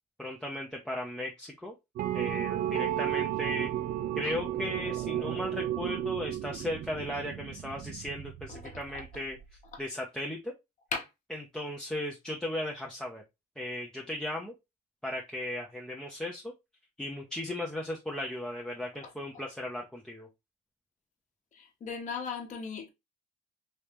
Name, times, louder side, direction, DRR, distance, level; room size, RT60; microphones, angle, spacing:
voice 1, 0.2-1.7 2.1-3.7 4.2-9.4 9.8-10.5 11.3-13.2 13.6-14.5 15.0-16.5 17.0-20.3, left 1 dB, 5° left, 0.6 m, -36 dB
sound 1, 2.0-9.5, right 12 dB, 55° right, 0.4 m, -33 dB
voice 2, 21.5-22.9, left 5 dB, 45° left, 1.0 m, -37 dB
3.2 x 2.8 x 3.3 m
cardioid pair, 110°, 17 cm